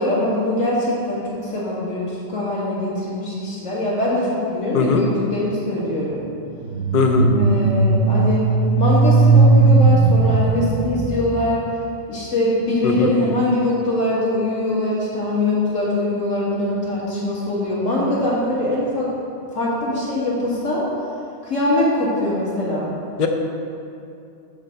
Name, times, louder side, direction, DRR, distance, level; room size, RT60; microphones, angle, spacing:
voice 1, 0.0-6.2 7.4-8.4 8.8-11.6 12.1-19.1 19.5-20.8 21.4-22.9, left 1 dB, 80° left, -7 dB, 2.2 m, -22 dB
sound 1, 6.6-11.5, right 3 dB, 60° right, 0.8 m, -16 dB
voice 2, 6.9-7.3 12.8-13.1 23.2-23.3, left 5 dB, 50° left, 3 dB, 0.8 m, -19 dB
7.2 x 4.2 x 6.5 m, 2.6 s
omnidirectional pair, 1.3 m